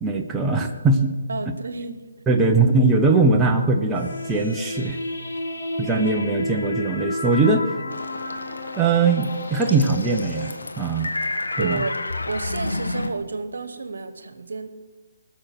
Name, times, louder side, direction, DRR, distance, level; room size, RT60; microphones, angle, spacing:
voice 1, 0.0-1.1 2.3-5.0 5.8-7.7 8.8-11.1 11.6-11.8, right 3 dB, 10° right, 2 dB, 0.9 m, -21 dB
voice 2, 1.3-2.0 11.6-14.7, right 3 dB, 70° right, 10 dB, 1.3 m, -31 dB
sound 1, 3.9-10.5, left 1 dB, 60° left, 3.3 m, -31 dB
sound 2, 7.9-13.1, left 2 dB, 85° left, 1.5 m, -31 dB
19.5 x 6.6 x 5.9 m, 1.3 s
figure-of-eight pair, 145°, 0 cm